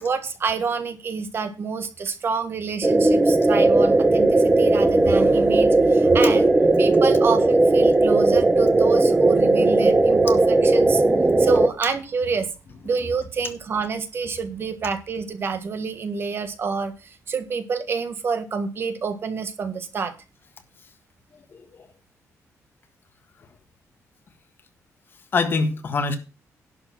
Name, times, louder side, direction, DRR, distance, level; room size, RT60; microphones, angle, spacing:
voice 1, 0.0-6.5 6.8-11.0 11.4-12.5 12.8-20.1, right 5 dB, 40° right, 1.5 m, -27 dB
sound 1, 2.8-11.7, right 2 dB, 15° right, 0.9 m, -17 dB
voice 2, 21.5-21.9 25.3-26.2, left 4 dB, 40° left, 1.6 m, -25 dB
11.5 x 6.9 x 5.8 m
wide cardioid pair, 160°, 6 cm